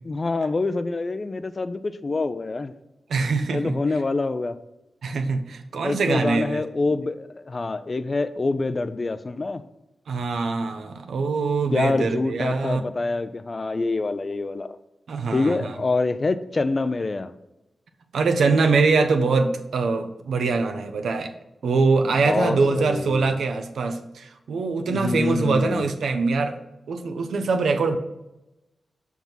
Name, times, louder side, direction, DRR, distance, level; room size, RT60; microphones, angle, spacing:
voice 1, 0.0-2.7 3.5-4.6 5.8-9.6 11.7-14.8 15.3-17.3 22.0-23.4 24.9-25.9, left 3 dB, 45° left, 12 dB, 0.4 m, -26 dB
voice 2, 3.1-3.7 5.0-6.6 10.1-12.8 15.1-15.7 18.1-21.3 21.6-26.6 26.9-28.0, right 4 dB, 85° right, 6 dB, 0.6 m, -23 dB
6.0 x 3.6 x 5.6 m, 0.95 s
cardioid pair, 50°, 0 cm